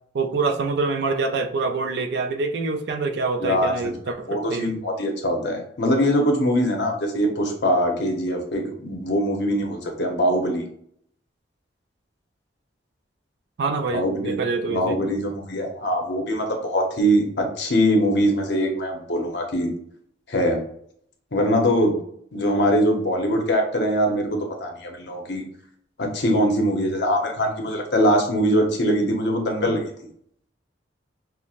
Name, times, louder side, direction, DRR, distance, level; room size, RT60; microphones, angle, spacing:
voice 1, 0.1-4.7 13.6-15.0, right 4 dB, 65° right, 7 dB, 0.4 m, -25 dB
voice 2, 3.4-10.6 13.9-14.4 14.7-19.7 20.3-20.6 21.3-21.9 22.3-25.4 26.0-29.8, equal, 65° left, 2 dB, 0.8 m, -22 dB
5.6 x 2.1 x 2.4 m, 0.66 s
head